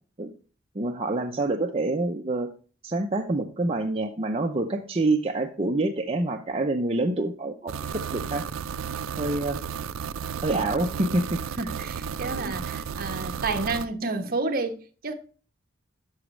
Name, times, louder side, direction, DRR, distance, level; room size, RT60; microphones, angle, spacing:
voice 1, 0.7-2.5 2.8-8.4 9.2-9.6 10.4-11.7 12.3-12.6, right 2 dB, 30° right, 0.7 m, -27 dB
sound 1, 7.7-13.9, right 7 dB, 70° right, 0.4 m, -33 dB
voice 2, 11.6-15.1, right 3 dB, 45° right, 1.1 m, -30 dB
11.0 x 6.1 x 3.2 m
head